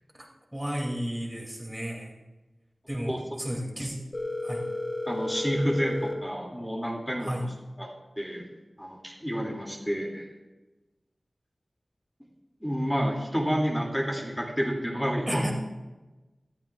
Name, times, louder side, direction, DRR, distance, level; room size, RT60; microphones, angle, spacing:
voice 1, 0.1-2.1 2.9-4.0 4.4-4.7 7.2-7.5 15.3-15.5, equal, 10° right, 0 dB, 2.5 m, -33 dB
Telephone, 4.1-6.1, left 2 dB, 50° left, 1.7 m, -32 dB
voice 2, 5.1-7.3 7.8-7.9 8.2-8.5 8.8-10.3 12.6-15.4, equal, 5° left, -1 dB, 2.3 m, -29 dB
19.5 x 13.5 x 2.3 m, 1.1 s
wide cardioid pair, 80°, 0 cm